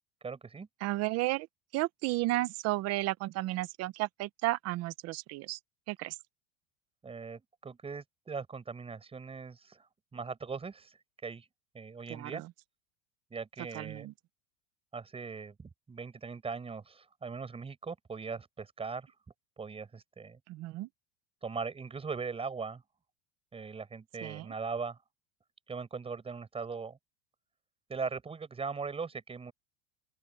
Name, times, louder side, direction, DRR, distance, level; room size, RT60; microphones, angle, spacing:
voice 1, 0.2-0.7 7.0-9.9 10.1-11.0 11.2-11.5 11.7-12.4 13.3-14.1 14.9-19.1 19.6-20.4 21.4-22.8 23.5-25.0 25.7-27.0 27.9-29.5, right 5 dB, 15° right, 7.4 m, -40 dB
voice 2, 0.8-1.5 1.7-5.6 5.9-6.2 12.1-12.5 13.7-14.1 20.5-20.9 24.2-24.5, right 18 dB, 40° right, 0.9 m, -33 dB
open air
supercardioid pair, 150°, 37 cm